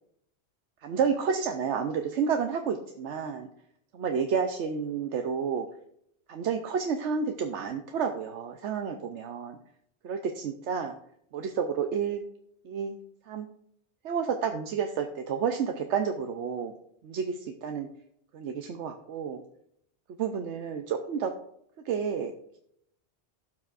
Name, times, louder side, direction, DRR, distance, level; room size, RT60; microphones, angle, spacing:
voice 1, 0.8-3.5 3.9-5.6 6.3-9.6 10.0-10.9 11.3-12.2 12.6-13.0 13.3-13.5 14.0-16.7 17.0-17.9 18.3-19.4 20.2-21.3 21.8-22.3, right 6 dB, 85° right, 5 dB, 1.0 m, -30 dB
16.5 x 5.9 x 2.5 m, 0.73 s
omnidirectional pair, 1.2 m